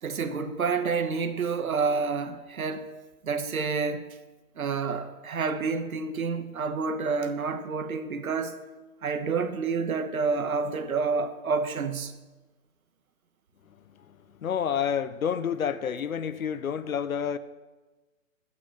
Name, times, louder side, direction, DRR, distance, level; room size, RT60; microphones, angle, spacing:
voice 1, 0.0-2.9 3.2-4.2 4.6-8.6 9.0-12.2, right 5 dB, 85° right, 1.5 m, -29 dB
voice 2, 14.4-17.4, left 8 dB, 80° left, 1.1 m, -29 dB
15.0 x 6.1 x 7.7 m
hypercardioid pair, 155°, 41 cm